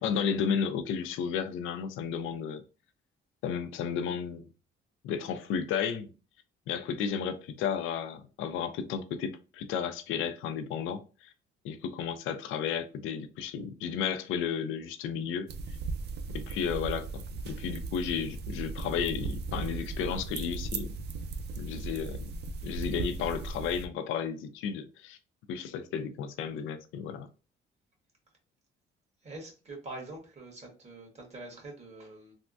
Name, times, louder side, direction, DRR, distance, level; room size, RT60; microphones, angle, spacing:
voice 1, 0.0-2.6 3.4-4.5 5.0-6.1 6.7-11.3 11.6-15.5 16.3-20.9 21.6-22.3 22.6-25.2 25.5-27.3, left 7 dB, 90° left, 0.4 m, -33 dB
sound 1, 15.5-23.9, right 4 dB, 55° right, 0.4 m, -37 dB
voice 2, 29.2-32.3, right 2 dB, 35° right, 1.5 m, -44 dB
3.4 x 2.1 x 2.5 m
cardioid pair, 90°, 20 cm